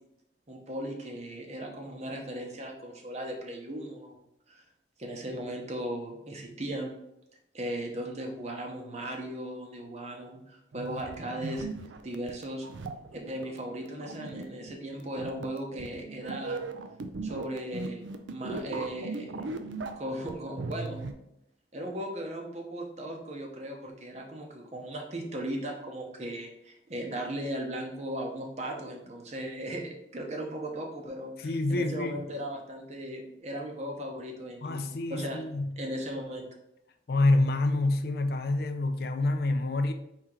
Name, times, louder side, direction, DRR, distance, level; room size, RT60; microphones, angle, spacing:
voice 1, 0.5-4.1 4.5-4.6 5.0-6.9 7.5-11.7 12.0-12.7 13.3-16.6 17.2-18.0 18.3-19.5 20.0-21.1 21.7-35.4 35.8-36.5, right 1 dB, 35° right, 0.7 m, -37 dB
sound 1, 10.7-21.1, right 3 dB, 80° right, 0.4 m, -38 dB
voice 2, 31.4-32.3 34.6-35.8 37.1-39.9, left 2 dB, 55° left, 0.4 m, -27 dB
4.5 x 2.8 x 3.7 m
head